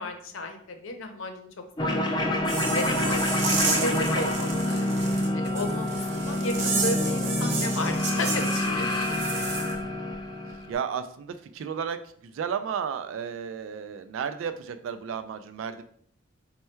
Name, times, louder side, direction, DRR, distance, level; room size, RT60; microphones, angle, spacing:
voice 1, 0.0-1.5 1.8-2.3 2.7-4.9 5.3-9.2, left 2 dB, 85° left, 5 dB, 0.7 m, -34 dB
sound 1, 1.8-10.7, left 1 dB, 25° left, 0.4 m, -27 dB
sound 2, 2.4-9.7, right 4 dB, 60° right, 0.9 m, -32 dB
voice 2, 10.4-15.8, right 7 dB, 85° right, 10 dB, 0.3 m, -33 dB
4.4 x 2.2 x 4.3 m, 0.62 s
head